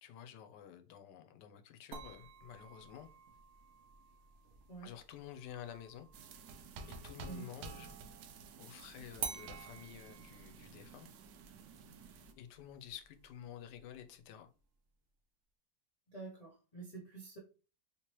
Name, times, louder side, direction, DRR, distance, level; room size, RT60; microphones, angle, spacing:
voice 1, 0.0-3.1 4.8-6.1 6.9-8.0 8.6-11.1 12.4-14.5, left 9 dB, 85° left, 1.2 m, -51 dB
sound 1, 1.9-7.5 9.2-14.2, right 6 dB, 60° right, 0.7 m, -50 dB
sound 2, 6.1-12.3, right 4 dB, 90° right, 1.2 m, -52 dB
voice 2, 16.1-17.4, right 4 dB, 55° left, 0.4 m, -48 dB
3.5 x 2.9 x 3.0 m
omnidirectional pair, 1.8 m